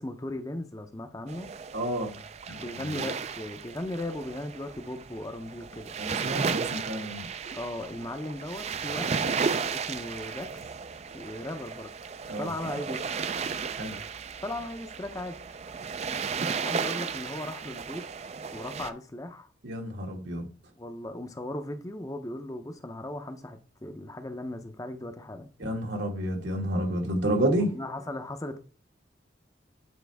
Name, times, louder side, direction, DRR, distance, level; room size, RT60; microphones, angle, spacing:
voice 1, 0.0-1.5 2.6-5.9 7.5-9.3 9.7-10.5 11.1-11.9 12.4-13.0 14.4-15.4 16.6-18.0 18.5-19.5 20.8-25.5 27.6-28.6, left 1 dB, 20° left, 0.6 m, -37 dB
sound 1, 1.3-18.9, right 5 dB, 35° right, 0.4 m, -34 dB
voice 2, 1.7-2.2 2.5-3.1 6.0-7.3 12.3-12.5 13.8-13.9 19.6-20.5 25.6-27.7, right 1 dB, 80° right, 1.9 m, -30 dB
8.3 x 4.5 x 3.4 m
head